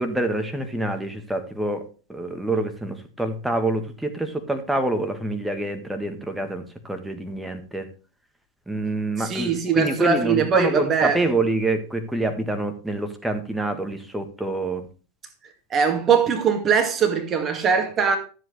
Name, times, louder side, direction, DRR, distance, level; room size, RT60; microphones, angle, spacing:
voice 1, 0.0-1.8 2.1-7.9 8.7-14.9, right 2 dB, 5° right, 1.7 m, -26 dB
voice 2, 9.2-11.2 15.7-18.2, right 6 dB, 25° right, 2.0 m, -21 dB
13.0 x 7.8 x 3.3 m
figure-of-eight pair, 90°, 0 cm